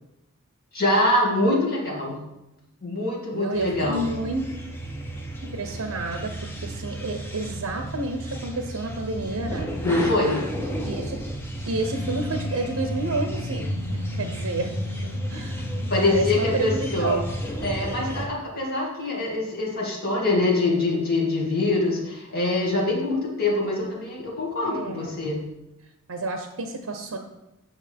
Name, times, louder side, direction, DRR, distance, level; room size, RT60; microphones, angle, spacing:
voice 1, 0.7-2.2 2.8-4.1 9.8-10.7 15.9-17.2 17.6-25.5, left 2 dB, 45° left, -4 dB, 2.3 m, -24 dB
voice 2, 3.3-4.4 5.4-9.8 10.8-11.2 11.7-14.8 15.0-17.3 24.6-25.4 26.1-27.2, right 2 dB, 75° right, 5 dB, 0.7 m, -30 dB
sound 1, 3.5-18.3, equal, 10° left, 0.7 m, -32 dB
9.0 x 5.6 x 3.5 m, 0.92 s
head